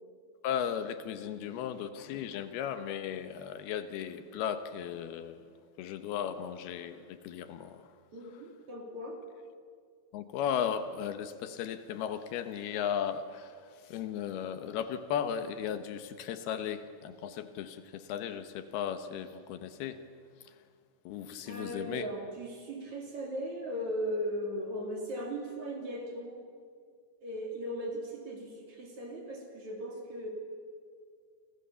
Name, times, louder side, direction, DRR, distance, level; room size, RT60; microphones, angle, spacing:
voice 1, 0.4-5.4 5.8-7.8 10.1-13.6 13.9-20.0 21.1-22.1, left 8 dB, 70° left, 9 dB, 2.5 m, -36 dB
voice 2, 8.1-9.2 21.4-26.4 27.2-30.3, equal, 40° right, 2 dB, 3.7 m, -38 dB
29.5 x 26.5 x 6.9 m, 2.1 s
omnidirectional pair, 5.5 m